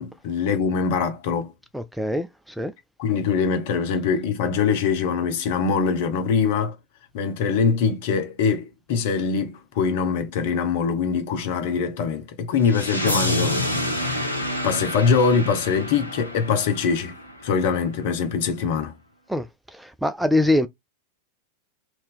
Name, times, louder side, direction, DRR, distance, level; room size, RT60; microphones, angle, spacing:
voice 1, 0.0-1.5 3.0-6.7 7.1-13.5 14.0-17.2 17.4-18.9, left 6 dB, 50° left, 0.9 m, -23 dB
voice 2, 1.7-2.3 2.6-2.7 19.3-19.4 19.7-20.7, left 1 dB, ahead, 0.3 m, -23 dB
sound 1, 12.7-17.6, left 1 dB, 85° left, 0.7 m, -28 dB
3.0 x 2.8 x 3.5 m
figure-of-eight pair, 90°, 0 cm